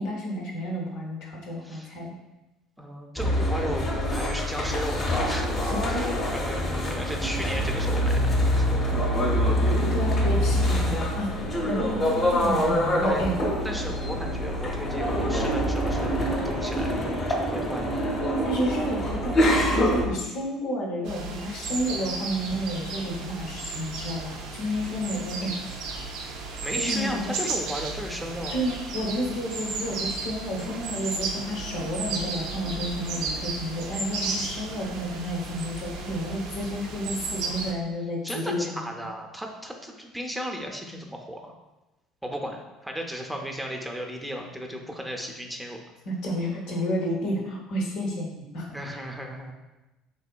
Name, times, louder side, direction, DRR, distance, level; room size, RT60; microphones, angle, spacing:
voice 1, 0.0-2.1 5.6-6.3 9.7-13.3 18.4-25.6 26.7-27.3 28.5-38.9 46.0-48.7 48.9-49.0, equal, 70° left, -1 dB, 0.7 m, -31 dB
voice 2, 2.8-3.9 4.1-5.5 5.9-6.6 6.8-8.2 8.5-8.6 13.0-13.2 13.6-17.0 17.3-17.9 26.6-28.6 38.2-41.5 42.2-45.8 48.7-49.5, equal, 5° right, 2 dB, 0.5 m, -35 dB
sound 1, 3.2-20.1, equal, 35° left, 0.7 m, -25 dB
sound 2, 21.1-37.7, right 3 dB, 65° right, 0.4 m, -34 dB
3.5 x 2.7 x 2.2 m, 1.0 s
hypercardioid pair, 65°, 0 cm